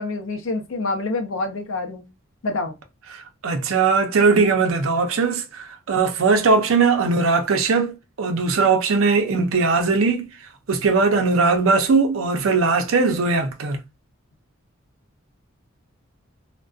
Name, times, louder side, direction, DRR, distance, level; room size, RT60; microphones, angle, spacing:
voice 1, 0.0-2.0 2.4-2.7, left 3 dB, 70° left, 0.5 m, -27 dB
voice 2, 3.1-10.3 10.7-13.8, right 4 dB, 80° right, 0.5 m, -19 dB
2.5 x 2.1 x 2.3 m
head